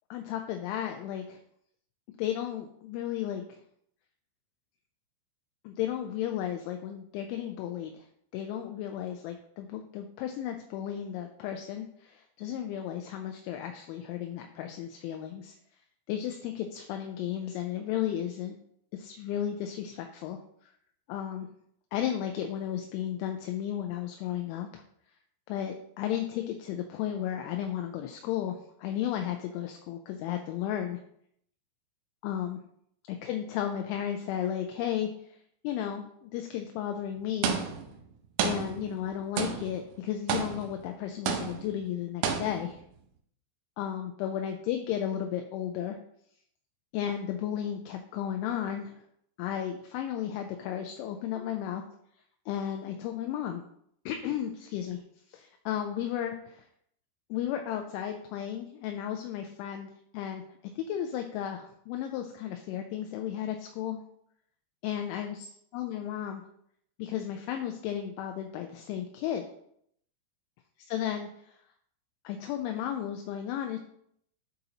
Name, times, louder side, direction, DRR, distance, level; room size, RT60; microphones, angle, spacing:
voice 1, 0.1-1.4 2.2-3.6 5.6-8.0 8.3-15.5 16.1-18.6 18.9-20.4 21.1-21.5 21.9-24.8 25.5-31.0 32.2-32.6 33.2-35.4 35.6-37.6 38.4-42.8 43.8-46.0 46.9-49.0 49.4-51.8 52.5-53.6 54.1-55.0 55.3-56.6 57.3-60.4 60.8-64.0 64.8-65.4 65.7-66.4 67.0-69.5 70.9-71.6 72.2-73.8, left 10 dB, 85° left, 4 dB, 2.7 m, -34 dB
sound 1, 37.4-38.0 38.4-39.1 39.4-39.9 40.3-40.9 41.3-41.8 42.2-42.8, right 7 dB, 80° right, 2.7 m, -31 dB
11.5 x 4.1 x 2.8 m, 0.70 s
omnidirectional pair, 5.8 m